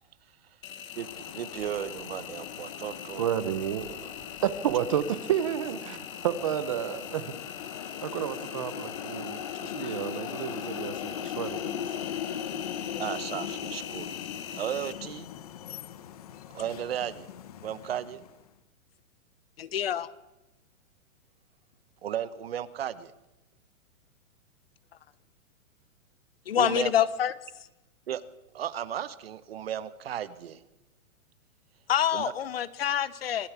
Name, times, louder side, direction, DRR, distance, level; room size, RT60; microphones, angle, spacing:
Engine, 0.6-14.9, left 9 dB, 70° left, 1.5 m, -43 dB
sound 1, 0.9-18.4, left 9 dB, 30° left, 0.9 m, -39 dB
voice 1, 1.0-3.3 3.9-4.1 13.0-14.1 14.5-15.3 16.5-17.3 17.6-18.2 22.0-23.1 26.5-26.9 28.1-28.2 28.5-30.6 32.1-32.3, right 10 dB, 45° right, 15 dB, 1.1 m, -35 dB
voice 2, 3.2-3.9 4.4-7.3 7.7-11.9, right 10 dB, 25° right, 13 dB, 0.9 m, -31 dB
voice 3, 19.6-20.1 26.5-27.3 31.9-33.5, left 10 dB, 45° left, 18 dB, 1.0 m, -26 dB
26.5 x 18.5 x 8.3 m, 1.0 s
hypercardioid pair, 175°, 42 cm